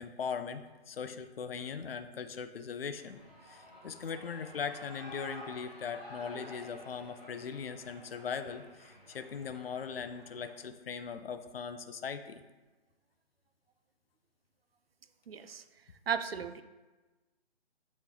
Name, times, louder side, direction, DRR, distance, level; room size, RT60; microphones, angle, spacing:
voice 1, 0.0-12.4, left 6 dB, 60° left, 9 dB, 0.5 m, -40 dB
Shout / Cheering, 2.9-10.7, equal, 10° right, 0.9 m, -51 dB
voice 2, 15.3-15.6 16.1-16.6, right 7 dB, 65° right, 11 dB, 0.5 m, -35 dB
8.4 x 3.2 x 3.8 m, 1.2 s
hypercardioid pair, 175°, 32 cm